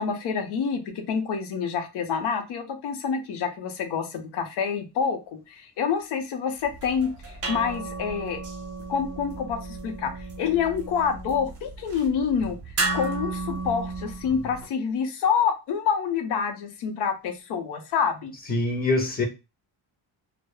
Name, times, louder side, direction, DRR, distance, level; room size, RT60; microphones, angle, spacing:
voice 1, 0.0-8.4 8.9-12.6 12.9-18.3, left 6 dB, 80° left, 7 dB, 0.6 m, -27 dB
sound 1, 6.6-14.6, right 3 dB, 40° right, 0.6 m, -34 dB
voice 2, 18.5-19.2, left 2 dB, 25° left, 3 dB, 0.5 m, -24 dB
2.2 x 2.0 x 3.0 m, 0.27 s
wide cardioid pair, 175°, 39 cm